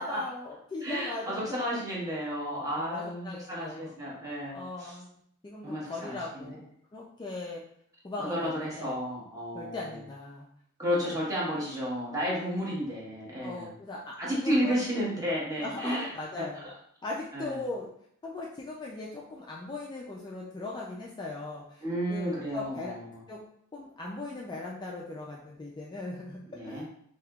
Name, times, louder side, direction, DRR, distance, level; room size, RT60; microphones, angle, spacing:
voice 1, 0.0-1.8 2.8-4.1 4.5-7.6 8.0-8.9 9.5-10.5 10.9-11.1 11.5-11.6 13.4-14.8 15.6-16.7 17.0-17.9 18.2-21.8 22.1-23.0 23.3-23.4 23.7-26.8, left 2 dB, 20° left, -3 dB, 0.3 m, -39 dB
voice 2, 0.8-4.9 5.6-6.5 8.2-10.0 10.8-13.7 14.2-16.1 17.3-17.6 21.8-23.2 26.5-26.8, equal, 15° right, -6 dB, 1.0 m, -32 dB
3.4 x 2.8 x 2.3 m, 0.68 s
head